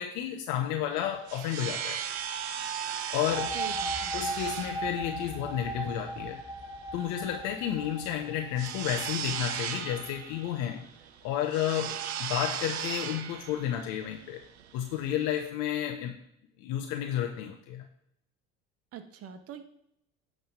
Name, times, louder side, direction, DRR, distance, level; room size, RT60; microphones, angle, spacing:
voice 1, 0.0-2.0 3.1-3.6 4.1-6.4 6.9-10.8 11.2-14.4 14.7-16.2 16.6-17.9, left 10 dB, 65° left, 4 dB, 0.9 m, -31 dB
sound 1, 0.9-15.5, right 9 dB, 85° right, 0.7 m, -37 dB
sound 2, 3.1-10.6, right 1 dB, 10° right, 2.9 m, -39 dB
voice 2, 3.5-4.1 18.9-19.6, right 9 dB, 50° right, 7 dB, 1.2 m, -43 dB
9.2 x 3.6 x 5.7 m, 0.77 s
hypercardioid pair, 75°, 32 cm